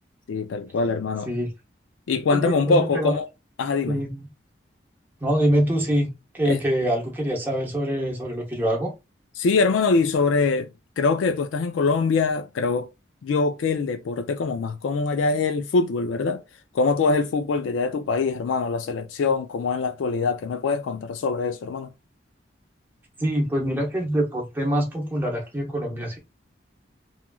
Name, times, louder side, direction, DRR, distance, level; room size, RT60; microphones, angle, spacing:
voice 1, 0.3-1.3 2.1-3.3 3.6-4.0 6.5-6.6 9.4-10.7 11.0-12.9 13.2-16.4 16.7-21.9, left 4 dB, 85° left, 0.3 m, -23 dB
voice 2, 2.3-3.1 3.9-4.3 5.2-8.9 23.2-26.2, right 1 dB, 10° right, 0.7 m, -25 dB
3.0 x 2.3 x 2.3 m
head